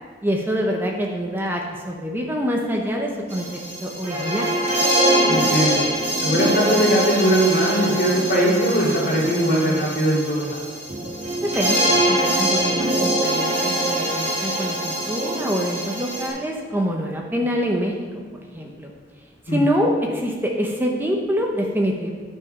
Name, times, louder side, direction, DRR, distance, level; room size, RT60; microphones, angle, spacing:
voice 1, 0.2-4.5 11.5-18.1 18.3-18.9 19.5-22.1, equal, 10° right, 0 dB, 0.7 m, -25 dB
sound 1, 3.3-16.3, right 1 dB, 40° right, 1.9 m, -23 dB
voice 2, 5.3-5.8 6.2-10.6 19.5-19.7, right 1 dB, 50° left, -5 dB, 2.6 m, -20 dB
10.0 x 4.7 x 5.4 m, 1.5 s
head